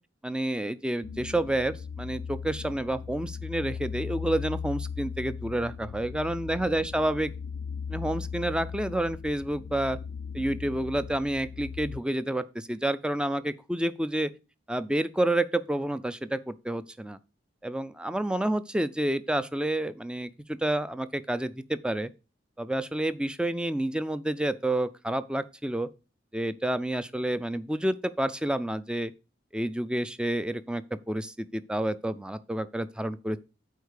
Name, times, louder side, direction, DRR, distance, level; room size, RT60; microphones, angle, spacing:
voice 1, 0.2-7.3 7.9-10.0 10.3-14.3 14.7-17.2 17.6-22.1 22.6-25.9 26.3-29.1 29.5-33.4, right 1 dB, 5° right, 0.4 m, -29 dB
sound 1, 1.0-12.0, left 6 dB, 90° left, 0.4 m, -38 dB
8.2 x 4.7 x 6.5 m
head